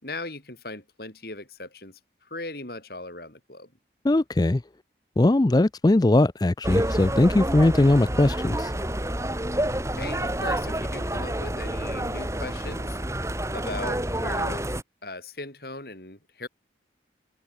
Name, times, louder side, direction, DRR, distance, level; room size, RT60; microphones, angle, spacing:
voice 1, 0.0-3.7 10.0-14.7 15.0-16.5, left 2 dB, 55° left, 5.2 m, -38 dB
voice 2, 4.0-4.6 5.2-8.7, left 2 dB, 20° left, 0.4 m, -20 dB
sound 1, 6.6-14.8, right 1 dB, 15° right, 4.7 m, -28 dB
open air
head